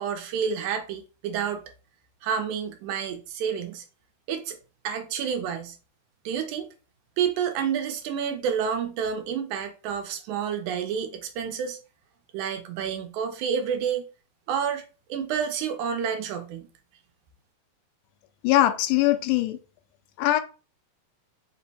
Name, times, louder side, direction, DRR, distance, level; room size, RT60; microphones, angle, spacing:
voice 1, 0.0-1.6 2.2-3.8 4.3-4.6 4.8-5.8 6.3-6.7 7.2-11.8 12.3-14.1 14.5-14.8 15.1-16.7, right 7 dB, 80° right, 2.2 m, -29 dB
voice 2, 18.4-19.6 20.2-20.4, left 14 dB, 90° left, 2.1 m, -21 dB
5.3 x 2.1 x 4.0 m
omnidirectional pair, 3.4 m